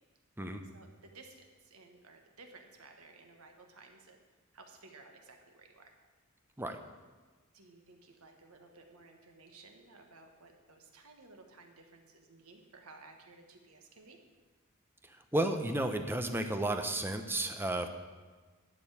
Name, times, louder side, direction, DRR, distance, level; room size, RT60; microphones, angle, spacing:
voice 1, 0.7-4.2 4.5-5.9 7.5-14.2, right 3 dB, 80° right, 3 dB, 1.5 m, -56 dB
voice 2, 15.1-17.9, right 1 dB, 10° right, 6 dB, 0.8 m, -33 dB
11.5 x 5.3 x 8.4 m, 1.3 s
head